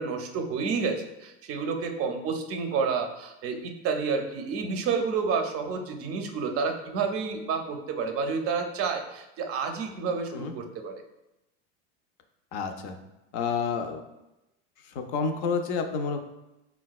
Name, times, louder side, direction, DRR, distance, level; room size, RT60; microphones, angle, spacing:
voice 1, 0.0-10.9, right 5 dB, 40° right, 4 dB, 0.4 m, -30 dB
voice 2, 12.5-13.0 13.3-14.0 14.8-16.2, left 5 dB, 70° left, 6 dB, 0.5 m, -29 dB
3.8 x 2.2 x 2.3 m, 0.94 s
supercardioid pair, 95°, 36 cm